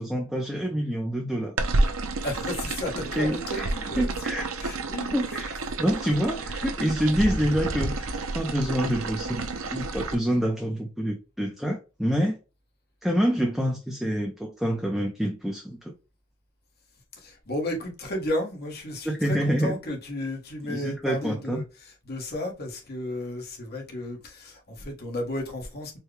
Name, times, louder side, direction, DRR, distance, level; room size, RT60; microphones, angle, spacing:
voice 1, 0.0-1.5 3.2-3.7 4.0-4.5 5.1-9.4 9.7-12.4 13.0-15.9 19.0-19.7 20.7-21.6, equal, ahead, 0.5 m, -27 dB
sound 1, 1.6-10.2, right 2 dB, 65° right, 0.7 m, -30 dB
voice 2, 2.2-5.7 17.1-26.0, left 1 dB, 45° left, 1.2 m, -33 dB
4.5 x 2.2 x 3.2 m
head